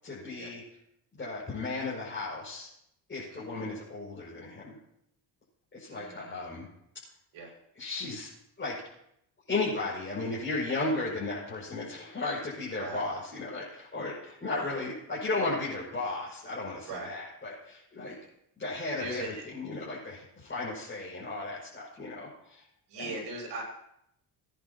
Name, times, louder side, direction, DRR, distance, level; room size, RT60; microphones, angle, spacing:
voice 1, 0.0-0.6 1.2-2.7 3.1-4.7 5.7-6.7 7.7-8.3 8.6-8.8 9.5-18.2 18.6-22.6 22.9-23.1, left 3 dB, 25° left, -8 dB, 6.4 m, -35 dB
voice 2, 3.3-3.7 5.9-6.5 7.3-7.5 12.8-13.0 14.5-14.7 16.9-17.1 19.0-19.4 22.9-23.6, right 2 dB, 70° right, -2 dB, 6.5 m, -40 dB
22.5 x 10.5 x 3.0 m, 0.77 s
cardioid pair, 115°, 42 cm